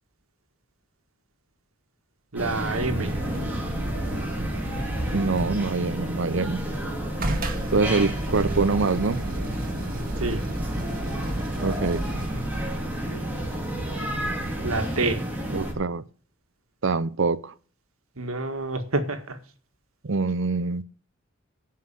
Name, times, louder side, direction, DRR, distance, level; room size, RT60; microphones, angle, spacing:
voice 1, 2.3-3.2 10.2-10.4 14.6-15.2 18.2-19.4, right 2 dB, 85° right, 1.8 m, -28 dB
sound 1, 2.4-15.7, right 1 dB, 10° right, 3.0 m, -31 dB
sound 2, 3.1-5.8 7.2-12.8 15.6-15.7, right 1 dB, 45° right, 1.7 m, -33 dB
voice 2, 5.1-6.6 7.7-9.2 11.6-12.1 15.5-16.1 16.8-17.5 20.0-20.8, right 4 dB, 60° right, 0.7 m, -25 dB
15.5 x 5.8 x 7.5 m
head